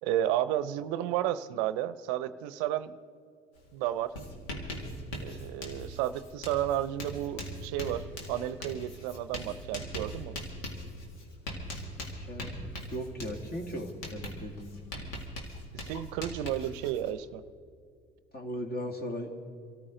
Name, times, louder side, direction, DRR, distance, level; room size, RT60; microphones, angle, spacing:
voice 1, 0.0-3.0 3.7-4.1 5.2-10.4 15.7-17.4, right 12 dB, 70° right, 14 dB, 0.6 m, -32 dB
Writing, 3.6-3.7 4.0-17.1, equal, 85° left, 2.3 m, -41 dB
voice 2, 12.2-12.5 12.9-14.8 18.3-19.3, equal, 35° left, 3 dB, 2.5 m, -37 dB
25.5 x 14.0 x 3.9 m, 2.4 s
hypercardioid pair, 65°, 29 cm